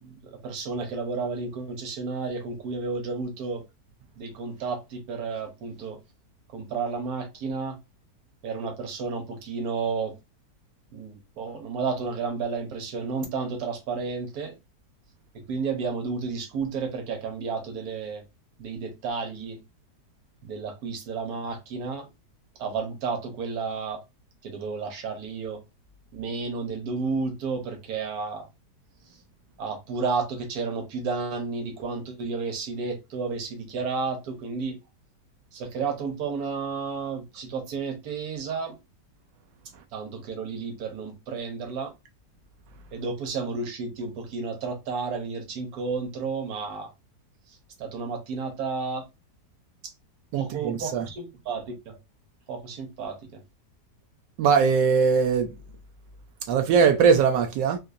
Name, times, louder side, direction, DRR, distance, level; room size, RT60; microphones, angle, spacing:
voice 1, 0.0-3.6 4.2-6.0 6.5-7.8 8.4-10.1 10.9-14.5 15.3-18.2 18.6-19.6 20.4-22.1 22.6-24.0 24.4-25.6 26.1-28.5 29.6-34.8 35.5-38.8 39.9-41.9 42.9-46.9 47.5-49.1 49.8-49.9 50.3-52.0 52.5-53.4, right 4 dB, 65° right, 1.3 m, -32 dB
voice 2, 50.3-51.0 54.4-55.5 56.5-57.8, right 6 dB, 85° right, 1.2 m, -21 dB
3.8 x 2.6 x 2.6 m
omnidirectional pair, 1.9 m